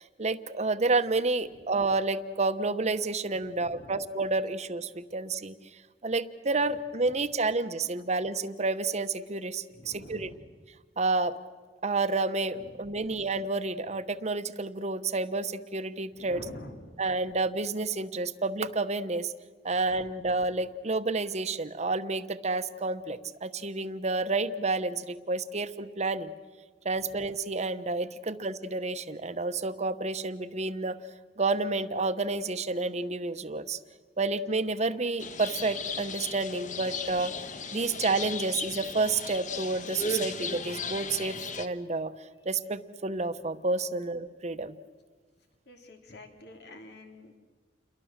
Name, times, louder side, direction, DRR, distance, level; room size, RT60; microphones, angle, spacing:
voice 1, 0.0-5.6 6.0-10.3 11.0-11.4 11.8-16.4 17.0-19.3 19.6-26.3 26.8-31.0 31.4-33.8 34.2-37.3 37.7-42.1 42.4-44.7, right 3 dB, 40° right, 11 dB, 1.0 m, -30 dB
voice 2, 3.4-4.0 9.7-10.4 12.5-13.2 16.2-17.0 19.9-20.1 27.0-27.1 45.6-47.4, left 1 dB, 65° left, 4 dB, 3.2 m, -48 dB
sound 1, 35.2-41.7, left 3 dB, 45° left, 1.2 m, -36 dB
29.0 x 22.5 x 7.4 m, 1.5 s
head